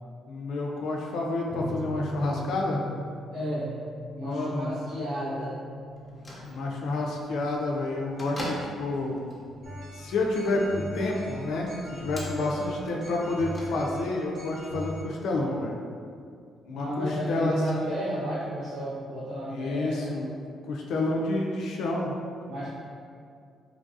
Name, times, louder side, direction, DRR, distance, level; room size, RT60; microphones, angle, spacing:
voice 1, 0.3-2.8 4.2-4.8 6.4-9.2 9.9-15.7 16.7-18.0 19.5-20.4 20.7-22.2, left 2 dB, 75° left, -1 dB, 0.3 m, -29 dB
sound 1, 1.5-12.5, equal, 30° right, 0.5 m, -43 dB
voice 2, 3.3-3.7 4.1-5.6 16.7-20.2 22.5-22.7, equal, 80° right, -13 dB, 1.0 m, -32 dB
Bell / Microwave oven, 5.9-14.2, equal, 15° left, 0.6 m, -44 dB
sound 2, 9.6-15.0, equal, 50° right, 1.2 m, -41 dB
3.2 x 2.3 x 2.5 m, 2.3 s
cardioid pair, 90°, 0 cm